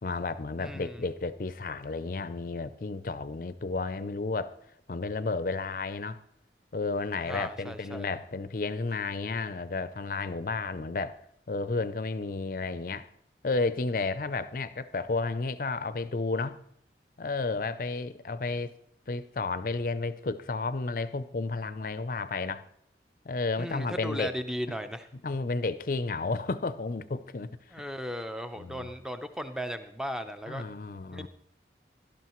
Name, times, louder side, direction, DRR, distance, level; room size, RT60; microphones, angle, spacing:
voice 1, 0.0-4.6 4.9-6.2 6.7-11.2 11.5-13.1 13.4-16.6 17.2-18.7 19.1-22.7 23.3-24.3 25.2-27.5 28.6-28.9 30.5-31.3, left 3 dB, 50° left, 0.5 m, -32 dB
voice 2, 0.6-1.1 7.2-8.1 23.6-25.1 27.7-30.6 31.1-31.3, equal, 5° right, 0.6 m, -36 dB
17.0 x 12.0 x 3.1 m
head